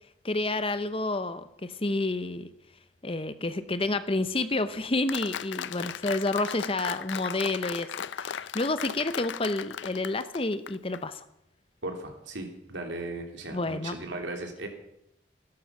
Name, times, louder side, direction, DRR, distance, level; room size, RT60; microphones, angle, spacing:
voice 1, 0.2-2.5 3.0-7.9 8.2-11.2 13.5-14.0, left 2 dB, 30° left, 12 dB, 0.7 m, -29 dB
Applause, 5.1-11.0, left 8 dB, 70° left, 0.5 m, -37 dB
voice 2, 11.8-14.7, right 2 dB, 75° right, 3 dB, 3.2 m, -37 dB
16.5 x 12.5 x 5.9 m, 0.82 s
head